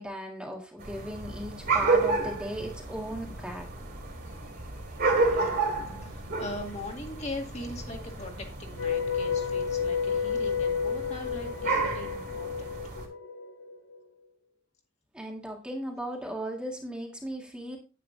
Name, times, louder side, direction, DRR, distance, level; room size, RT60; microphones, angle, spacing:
voice 1, 0.0-3.7 15.1-17.8, equal, 5° right, 0 dB, 1.7 m, -37 dB
sound 1, 0.8-13.1, right 3 dB, 50° right, 3.1 m, -31 dB
voice 2, 4.3-12.9, left 2 dB, 35° left, 2 dB, 2.1 m, -41 dB
sound 2, 8.8-14.0, left 6 dB, 80° left, 1.6 m, -31 dB
10.0 x 9.2 x 2.7 m, 0.34 s
head